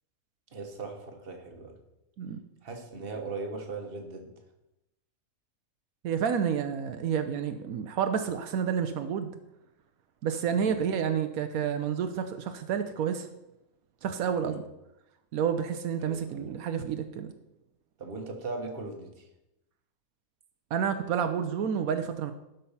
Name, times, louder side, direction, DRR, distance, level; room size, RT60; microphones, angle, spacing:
voice 1, 0.5-1.8 2.6-4.3 10.5-10.8 14.4-14.6 16.0-16.6 18.0-19.3, right 3 dB, 45° right, 4 dB, 1.4 m, -39 dB
voice 2, 6.0-9.3 10.2-13.3 14.0-14.6 15.3-17.3 20.7-22.3, right 7 dB, 80° right, 8 dB, 1.1 m, -29 dB
12.0 x 5.4 x 5.5 m, 0.92 s
omnidirectional pair, 1.5 m